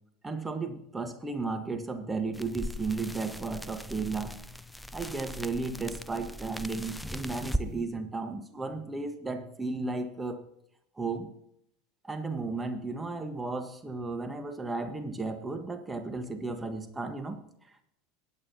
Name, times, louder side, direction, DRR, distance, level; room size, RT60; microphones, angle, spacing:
voice 1, 0.2-4.4 4.9-10.4 11.0-11.3 12.0-17.4, right 3 dB, 15° right, 7 dB, 1.5 m, -34 dB
sound 1, 2.3-7.7, equal, 5° left, 0.5 m, -38 dB
20.0 x 8.9 x 2.9 m, 0.73 s
figure-of-eight pair, 75°, 0 cm